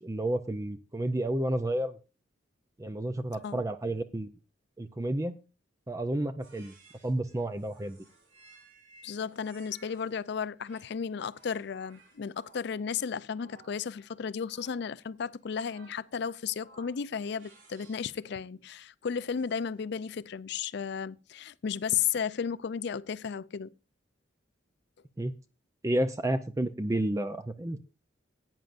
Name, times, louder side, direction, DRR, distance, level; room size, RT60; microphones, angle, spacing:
voice 1, 0.0-2.0 2.8-4.3 4.8-5.4 5.9-6.7 7.0-8.0 25.2-25.3 25.8-27.8, right 1 dB, 15° right, 0.5 m, -31 dB
sound 1, 6.4-10.2 10.6-18.2 19.3-19.9, right 3 dB, 85° right, 3.7 m, -59 dB
voice 2, 9.0-23.7, left 7 dB, 65° left, 0.4 m, -34 dB
16.5 x 9.1 x 2.5 m
head